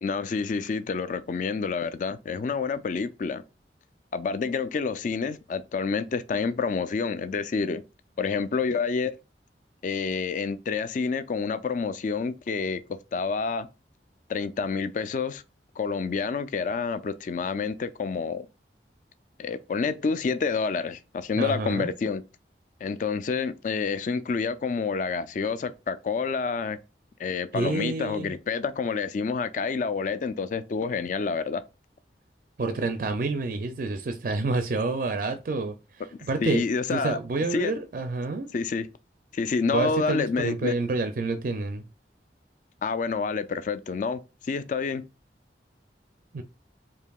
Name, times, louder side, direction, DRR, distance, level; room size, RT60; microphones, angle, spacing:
voice 1, 0.0-3.4 4.1-7.8 8.2-9.1 9.8-12.8 13.1-13.7 14.3-15.4 15.8-18.5 19.4-22.2 22.8-26.8 27.2-31.6 36.4-37.2 37.5-37.7 38.5-38.9 39.3-40.7 42.8-44.2 44.5-45.0, left 5 dB, 45° left, 0.3 m, -28 dB
voice 2, 21.4-21.9 27.5-28.3 32.6-36.6 36.9-38.5 39.7-41.8 46.3-46.4, right 3 dB, 50° right, 0.4 m, -28 dB
4.5 x 2.9 x 2.3 m
head